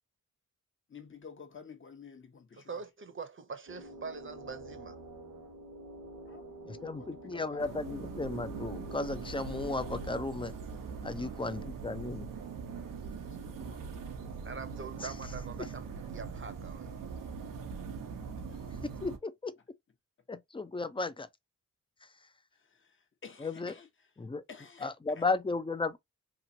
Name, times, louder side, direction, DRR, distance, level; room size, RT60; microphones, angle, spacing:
voice 1, 0.9-2.8 6.3-7.8 11.1-11.5 13.2-14.1 18.5-18.9 22.5-24.1 24.5-25.3, left 5 dB, 40° left, 0.9 m, -53 dB
voice 2, 2.6-4.9 14.4-17.0, right 5 dB, 40° right, 0.8 m, -44 dB
sound 1, 3.7-10.3, right 1 dB, 75° right, 1.1 m, -48 dB
voice 3, 6.7-10.5 11.0-12.3 19.0-19.5 20.3-21.3 23.4-23.7 24.2-24.4 24.8-26.0, left 3 dB, 15° left, 0.5 m, -34 dB
sound 2, 7.6-19.2, right 5 dB, 90° right, 0.8 m, -42 dB
3.0 x 2.5 x 2.6 m
cardioid pair, 55°, 32 cm